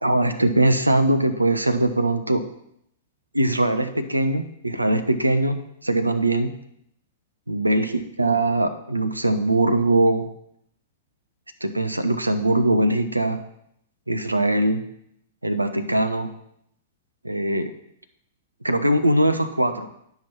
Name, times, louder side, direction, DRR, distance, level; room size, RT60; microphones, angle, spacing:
voice 1, 0.0-2.4 3.3-5.6 5.8-6.5 7.5-10.3 11.6-13.4 14.1-14.8 15.4-16.3 17.2-17.7 18.6-19.9, right 1 dB, 85° right, 8 dB, 0.8 m, -21 dB
9.4 x 5.7 x 4.6 m, 0.73 s
figure-of-eight pair, 105°, 0 cm